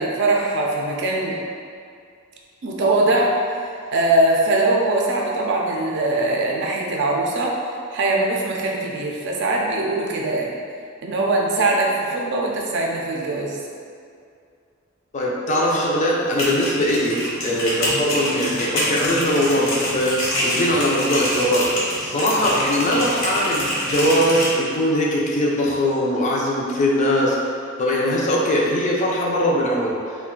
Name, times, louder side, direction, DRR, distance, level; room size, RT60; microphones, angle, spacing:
voice 1, 0.0-1.4 2.6-3.3 3.9-7.5 7.9-10.5 11.0-13.6, right 2 dB, 55° right, -1 dB, 0.4 m, -21 dB
voice 2, 15.1-20.2 20.4-21.7 22.0-27.4 27.8-30.0, equal, 35° left, -3 dB, 0.4 m, -21 dB
sound 1, 16.2-24.5, equal, 70° left, 0.9 m, -26 dB
2.4 x 2.2 x 3.7 m, 2.3 s
head